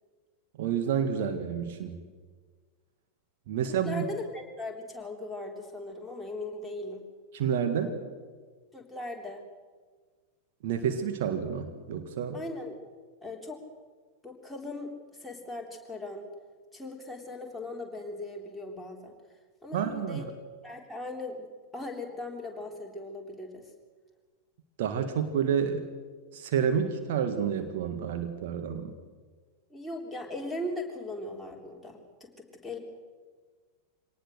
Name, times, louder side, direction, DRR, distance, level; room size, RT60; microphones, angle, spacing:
voice 1, 0.6-2.0 3.5-4.0 7.3-8.0 10.6-12.4 19.7-20.3 24.8-25.8 26.3-28.9, right 7 dB, 55° right, 6 dB, 1.7 m, -29 dB
voice 2, 3.6-7.0 8.7-9.4 12.3-12.8 13.2-13.6 14.2-14.9 15.2-16.3 16.7-19.2 19.6-20.3 20.6-21.5 21.7-23.7 29.7-32.8, left 2 dB, 5° left, -1 dB, 3.5 m, -39 dB
24.0 x 18.5 x 6.5 m, 1.5 s
figure-of-eight pair, 90°, 0 cm